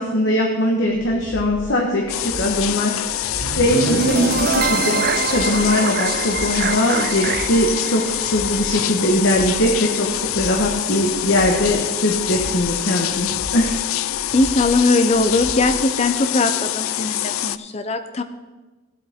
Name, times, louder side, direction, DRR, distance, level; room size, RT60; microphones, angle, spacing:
voice 1, 0.0-13.7, left 1 dB, 60° left, 0 dB, 1.2 m, -21 dB
sound 1, 0.9-15.8, equal, 80° right, 1.5 m, -37 dB
sound 2, 2.1-17.6, left 13 dB, 80° left, 0.3 m, -25 dB
sound 3, 3.4-9.5, right 6 dB, 50° right, 0.4 m, -25 dB
voice 2, 14.3-18.2, left 2 dB, 30° left, 9 dB, 0.6 m, -20 dB
16.5 x 7.7 x 3.6 m, 1.2 s
head